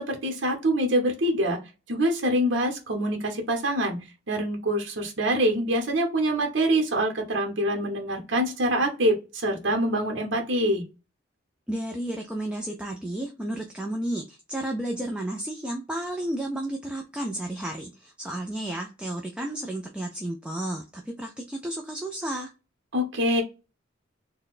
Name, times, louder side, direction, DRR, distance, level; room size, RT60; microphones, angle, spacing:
voice 1, 0.1-1.6 1.9-10.9 22.9-23.4, right 1 dB, 70° right, 1 dB, 0.9 m, -25 dB
voice 2, 11.7-22.5, right 1 dB, 5° right, 1 dB, 0.4 m, -32 dB
3.9 x 2.2 x 2.4 m, 0.29 s
head